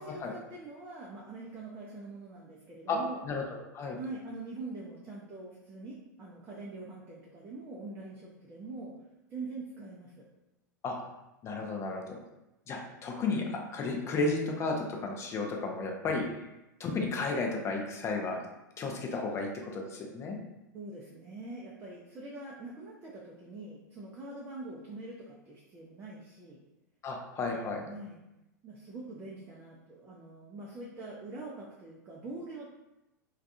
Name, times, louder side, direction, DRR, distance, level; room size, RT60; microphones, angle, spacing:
voice 1, 0.1-3.2 3.9-8.9 9.3-10.3 20.7-26.6 27.8-28.2 28.6-32.7, right 2 dB, 20° right, -5 dB, 0.5 m, -44 dB
voice 2, 3.3-4.0 10.8-11.0 11.4-12.2 12.7-16.2 16.8-18.4 18.8-20.4 27.0-27.9, left 3 dB, 30° left, 1 dB, 0.5 m, -33 dB
2.3 x 2.3 x 2.7 m, 0.94 s
figure-of-eight pair, 90°, 10 cm